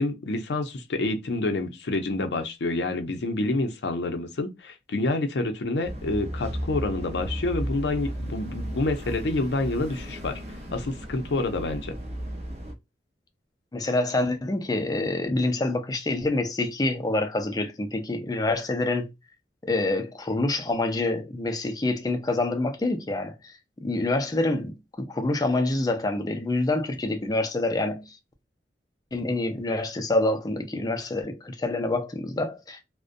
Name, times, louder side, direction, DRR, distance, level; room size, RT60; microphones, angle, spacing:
voice 1, 0.0-10.4 10.7-11.9, left 2 dB, 75° left, 0.5 m, -28 dB
sound 1, 5.8-12.7, equal, 35° right, 0.5 m, -34 dB
voice 2, 13.7-19.1 19.6-23.5 23.8-28.2 29.1-32.8, left 2 dB, 20° left, 0.4 m, -26 dB
2.5 x 2.1 x 2.4 m
head